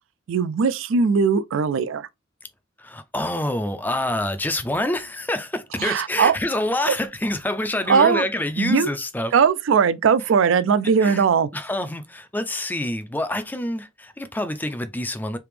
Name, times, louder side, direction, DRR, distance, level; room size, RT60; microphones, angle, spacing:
voice 1, 0.3-2.1 5.8-6.4 6.9-7.0 7.9-8.3 8.6-8.9 9.3-11.5, right 6 dB, 70° right, 0.4 m, -19 dB
voice 2, 2.8-9.3 11.0-11.2 11.5-15.4, left 1 dB, 10° left, 0.4 m, -27 dB
3.4 x 2.8 x 3.2 m
head